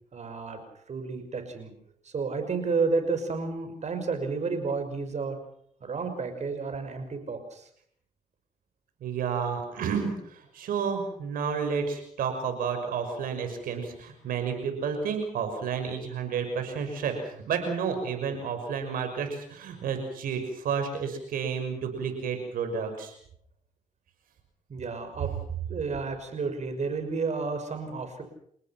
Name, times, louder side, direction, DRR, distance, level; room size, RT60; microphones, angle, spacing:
voice 1, 0.1-0.6 0.9-1.7 2.0-5.4 5.8-7.7 24.7-25.3 25.7-28.2, right 4 dB, 55° right, 8 dB, 6.0 m, -31 dB
voice 2, 9.0-23.1, right 6 dB, 85° right, 6 dB, 6.1 m, -31 dB
29.5 x 19.0 x 6.0 m, 0.67 s
cardioid pair, 70°, 14 cm